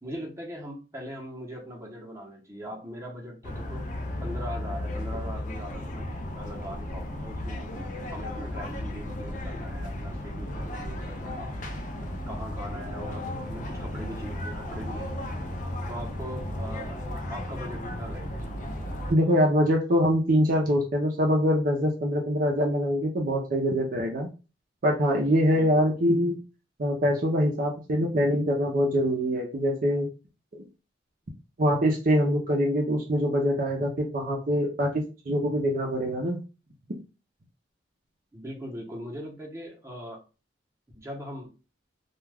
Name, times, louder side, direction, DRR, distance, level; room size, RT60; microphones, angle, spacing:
voice 1, 0.0-3.8 4.2-6.1 6.3-7.7 8.1-11.5 12.0-15.3 15.9-18.6 25.5-25.9 38.3-40.2 40.9-41.5, equal, 15° right, -1 dB, 0.8 m, -40 dB
sound 1, 3.4-19.1, left 1 dB, 45° left, 0.4 m, -34 dB
voice 2, 19.1-24.3 24.8-26.4 26.8-30.1 30.5-30.6 31.6-36.4, equal, 50° right, 0 dB, 0.5 m, -24 dB
2.3 x 2.2 x 3.3 m, 0.32 s
head